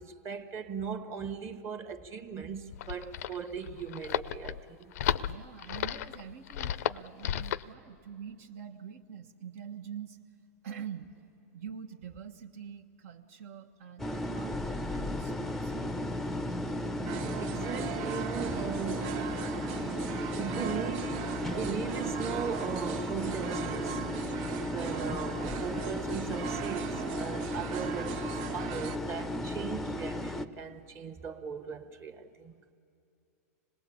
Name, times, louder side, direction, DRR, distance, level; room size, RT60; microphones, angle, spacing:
voice 1, 0.0-4.9 17.4-19.3 20.4-24.1 24.6-32.6, right 6 dB, 30° right, 1.3 m, -38 dB
sound 1, 2.5-7.7, left 11 dB, 70° left, 0.6 m, -34 dB
voice 2, 5.2-10.2 10.6-11.1 11.5-16.3, right 8 dB, 65° right, 1.2 m, -45 dB
sound 2, 14.0-30.5, left 1 dB, 5° left, 0.6 m, -35 dB
sound 3, 17.1-29.0, right 12 dB, 50° right, 0.5 m, -40 dB
25.5 x 19.5 x 8.6 m
hypercardioid pair, 125°, 9 cm